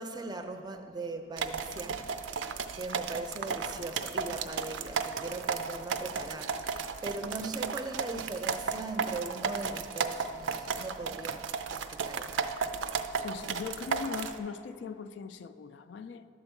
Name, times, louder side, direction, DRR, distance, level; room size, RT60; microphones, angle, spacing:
voice 1, 0.0-12.3, right 3 dB, 20° right, 0.5 m, -40 dB
sound 1, 1.4-14.4, right 5 dB, 75° right, 0.4 m, -34 dB
voice 2, 13.2-16.3, left 6 dB, 65° left, 0.3 m, -40 dB
11.5 x 4.5 x 6.9 m
head